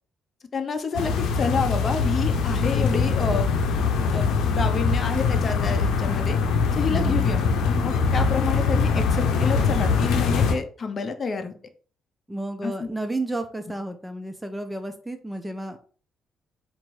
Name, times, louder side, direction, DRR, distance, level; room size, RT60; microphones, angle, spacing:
voice 1, 0.5-3.5 4.1-4.3 4.5-6.4 6.7-11.5 12.6-12.9, left 5 dB, 40° left, 7 dB, 0.8 m, -29 dB
sound 1, 1.0-10.5, left 5 dB, 85° left, 0.7 m, -22 dB
voice 2, 6.9-7.5 12.3-15.8, right 1 dB, 10° right, 7 dB, 0.6 m, -32 dB
4.3 x 2.6 x 4.7 m, 0.42 s
cardioid pair, 90°, 0 cm